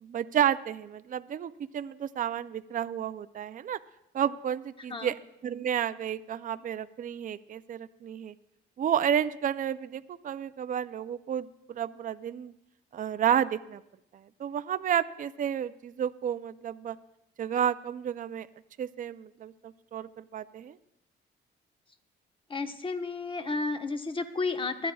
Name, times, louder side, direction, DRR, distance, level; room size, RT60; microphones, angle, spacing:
voice 1, 0.0-3.8 4.1-5.1 5.4-8.3 8.8-12.5 12.9-13.8 14.1-17.0 17.4-18.5 18.8-20.8, right 9 dB, 40° right, 13 dB, 0.4 m, -31 dB
voice 2, 4.8-5.1 22.5-24.9, left 3 dB, 25° left, 7 dB, 1.0 m, -32 dB
25.0 x 9.7 x 2.3 m, 0.82 s
cardioid pair, 90°, 20 cm